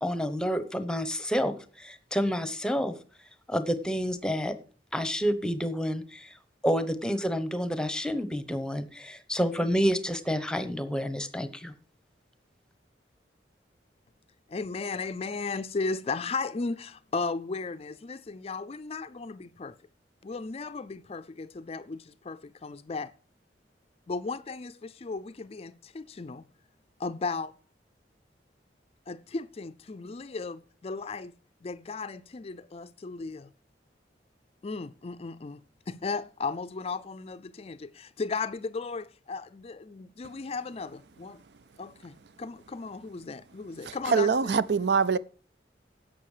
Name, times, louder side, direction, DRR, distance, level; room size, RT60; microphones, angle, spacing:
voice 1, 0.0-3.0 3.5-4.5 4.9-6.3 6.6-11.7, equal, 5° left, 0.9 m, -29 dB
voice 2, 14.5-19.8 20.2-23.1 24.1-26.4 27.0-27.5 29.1-31.3 31.6-33.5 34.6-41.4 41.8-44.6, left 4 dB, 35° left, 0.4 m, -35 dB
voice 3, 43.9-45.2, right 5 dB, 70° right, 0.5 m, -24 dB
11.0 x 7.7 x 4.9 m
head